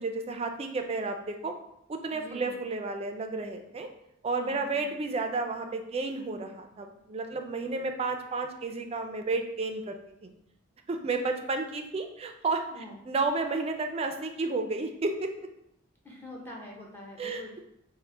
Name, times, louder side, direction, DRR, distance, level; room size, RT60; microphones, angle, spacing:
voice 1, 0.0-1.5 1.9-3.9 4.2-10.3 10.9-12.6 13.1-15.3 17.2-17.6, right 3 dB, 30° right, 5 dB, 0.3 m, -32 dB
voice 2, 2.1-2.5 4.3-4.9 12.7-13.0 16.0-17.5, left 1 dB, 10° left, -3 dB, 0.6 m, -45 dB
3.9 x 2.1 x 3.2 m, 0.78 s
head